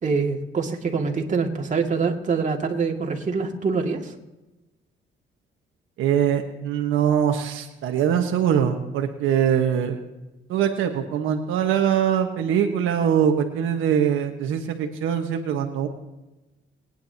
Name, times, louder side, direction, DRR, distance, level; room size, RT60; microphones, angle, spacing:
voice 1, 0.0-4.1, right 4 dB, 40° right, 1 dB, 2.2 m, -25 dB
voice 2, 6.0-9.9 10.5-15.9, right 8 dB, 90° right, 4 dB, 1.4 m, -22 dB
21.5 x 10.0 x 2.9 m, 1.0 s
cardioid pair, 90°, 20 cm